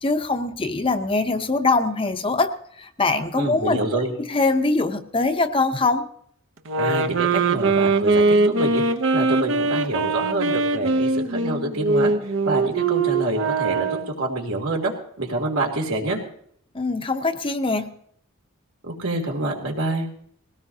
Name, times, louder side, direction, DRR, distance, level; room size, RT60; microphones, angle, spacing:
voice 1, 0.0-2.5 2.8-6.0 16.7-18.0, left 3 dB, 25° left, 7 dB, 0.7 m, -23 dB
voice 2, 3.3-4.1 6.8-8.8 9.1-12.1 12.5-16.2 18.8-20.1, right 2 dB, 80° right, 1 dB, 2.8 m, -27 dB
sound 1, 6.6-14.2, right 3 dB, 60° right, 0.8 m, -22 dB
20.0 x 17.0 x 2.8 m, 0.65 s
head